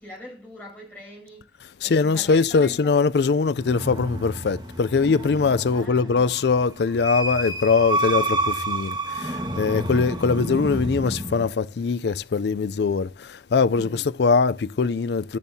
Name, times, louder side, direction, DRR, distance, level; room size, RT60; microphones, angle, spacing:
voice 1, 0.0-1.5 1.8-2.9 5.7-6.3 13.7-14.1, left 1 dB, 10° left, 6.9 m, -42 dB
voice 2, 1.8-15.4, left 4 dB, 65° left, 0.4 m, -22 dB
sound 1, 3.5-11.5, right 1 dB, 25° right, 1.4 m, -29 dB
12.0 x 10.5 x 2.7 m
head